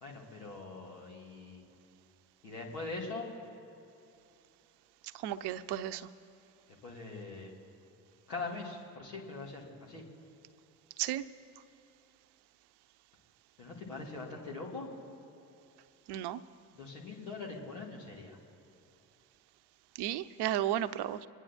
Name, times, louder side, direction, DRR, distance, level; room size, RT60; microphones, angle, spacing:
voice 1, 0.0-1.6 2.4-3.3 6.8-7.5 8.3-10.0 13.6-14.9 16.7-18.4, left 3 dB, 85° left, -3 dB, 2.5 m, -42 dB
voice 2, 5.1-6.1 11.0-11.2 16.1-16.4 19.9-21.3, right 12 dB, 55° right, 13 dB, 0.7 m, -34 dB
26.0 x 10.0 x 4.4 m, 2.9 s
hypercardioid pair, 50°, 47 cm